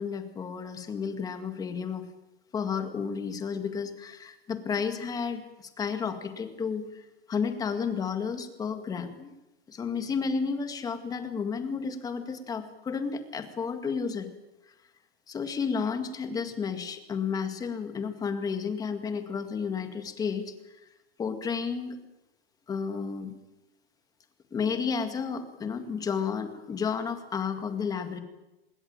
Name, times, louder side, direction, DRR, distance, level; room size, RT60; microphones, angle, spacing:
voice 1, 0.0-2.1 2.5-9.3 9.7-14.3 15.3-20.5 21.2-22.0 22.7-23.3 24.5-28.2, left 6 dB, 10° left, 8 dB, 2.0 m, -32 dB
26.5 x 20.5 x 9.0 m, 0.97 s
supercardioid pair, 165°, 31 cm